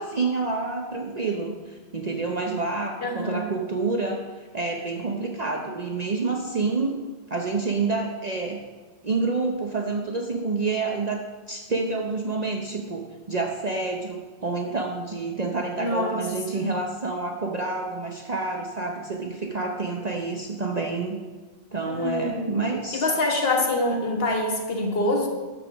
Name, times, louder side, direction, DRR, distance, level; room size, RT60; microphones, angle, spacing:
voice 1, 0.0-4.2 4.5-7.0 7.3-8.6 9.0-21.2 21.7-23.1, right 3 dB, 40° right, 1 dB, 0.9 m, -28 dB
voice 2, 3.0-3.5 15.8-16.7 21.9-22.5 22.9-25.3, left 2 dB, 65° left, 2 dB, 1.6 m, -25 dB
13.0 x 5.0 x 6.1 m, 1.3 s
omnidirectional pair, 1.1 m